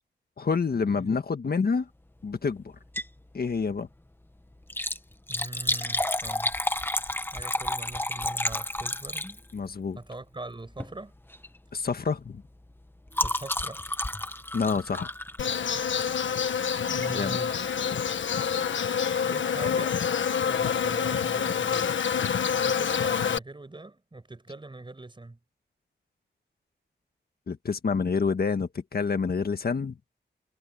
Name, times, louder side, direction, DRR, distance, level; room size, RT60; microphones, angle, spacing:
voice 1, 0.4-1.9 2.2-2.7 3.3-3.9 9.5-10.0 11.7-12.4 14.5-15.1 17.1-17.4 27.5-29.9, left 5 dB, 55° left, 1.6 m, -27 dB
Liquid, 2.8-3.2 3.6-3.7 4.6-9.7 10.7-11.0 11.3-11.6 11.8-15.9 16.9-17.1 17.7-17.8 17.9-18.0, left 1 dB, 10° left, 1.3 m, -31 dB
voice 2, 5.3-6.6 7.3-9.3 9.9-11.1 13.2-13.8 16.9-17.6 19.3-20.0 20.4-21.9 22.6-25.4, right 2 dB, 25° right, 5.8 m, -42 dB
Insect, 15.4-23.4, left 7 dB, 85° left, 1.4 m, -27 dB
wide cardioid pair, 85°, 19 cm